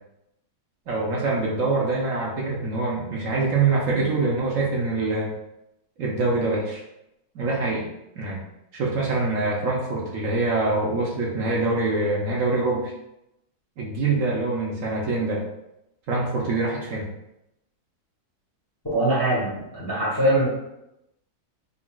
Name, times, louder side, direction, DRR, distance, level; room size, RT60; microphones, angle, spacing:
voice 1, 0.9-5.3 6.0-6.8 7.3-7.9 8.2-8.4 8.7-12.9 13.8-15.5 16.1-17.1, right 3 dB, 65° right, -3 dB, 0.9 m, -24 dB
voice 2, 18.8-20.5, right 1 dB, 25° left, -7 dB, 0.5 m, -22 dB
3.8 x 2.2 x 2.2 m, 0.85 s
omnidirectional pair, 1.7 m